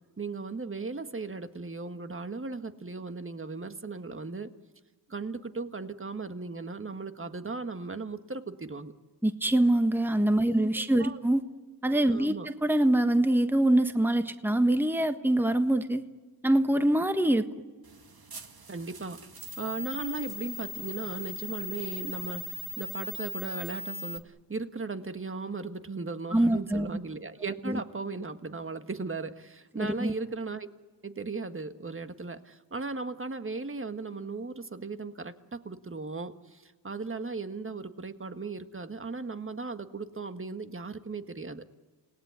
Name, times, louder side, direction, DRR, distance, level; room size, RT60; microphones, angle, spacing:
voice 1, 0.2-4.5 5.1-8.9 10.5-10.7 11.0-11.2 12.1-12.5 18.7-19.2 19.6-30.7 31.0-41.7, right 3 dB, 30° right, 9 dB, 1.7 m, -37 dB
voice 2, 9.2-11.4 11.8-16.0 16.4-17.4 26.3-26.9 27.7-27.8 29.8-30.1, right 1 dB, 5° right, 8 dB, 1.4 m, -24 dB
sound 1, 17.8-24.2, left 2 dB, 55° right, 2.2 m, -40 dB
28.0 x 18.0 x 9.6 m, 1.4 s
cardioid pair, 50°, 44 cm